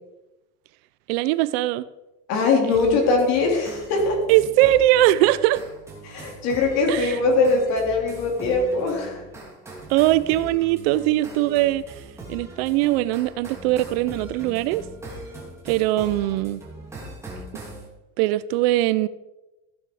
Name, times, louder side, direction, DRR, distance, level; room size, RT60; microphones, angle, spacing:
voice 1, 1.1-1.8 2.7-3.0 4.3-5.6 6.9-7.2 9.9-12.0 12.3-14.8 15.6-16.6 18.2-19.1, right 15 dB, 55° right, 16 dB, 0.5 m, -21 dB
voice 2, 2.3-4.2 6.0-9.2, left 3 dB, 45° left, 1 dB, 3.7 m, -21 dB
sound 1, 2.7-17.9, right 1 dB, 5° right, 2.5 m, -40 dB
15.5 x 8.9 x 4.9 m, 1.0 s
cardioid pair, 170°, 37 cm